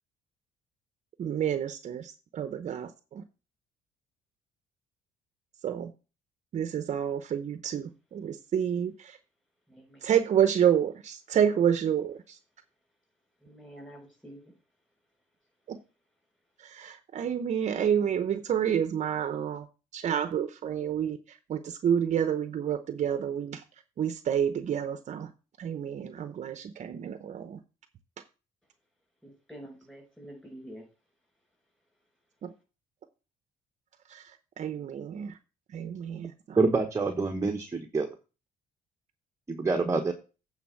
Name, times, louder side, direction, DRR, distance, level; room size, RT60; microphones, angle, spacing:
voice 1, 1.2-3.2 5.6-5.9 6.5-9.1 10.0-12.2 15.7-15.8 16.6-19.6 19.9-21.2 21.5-23.6 24.0-25.3 25.6-27.6 32.4-32.5 34.1-34.2 34.6-35.3 35.7-36.6, right 9 dB, 50° right, 0.8 m, -29 dB
voice 2, 9.7-10.1 13.4-14.5 29.2-30.9, equal, 5° left, 5.8 m, -47 dB
voice 3, 36.6-38.1 39.5-40.1, right 4 dB, 20° right, 1.0 m, -26 dB
8.7 x 4.1 x 7.0 m
cardioid pair, 110°, 15 cm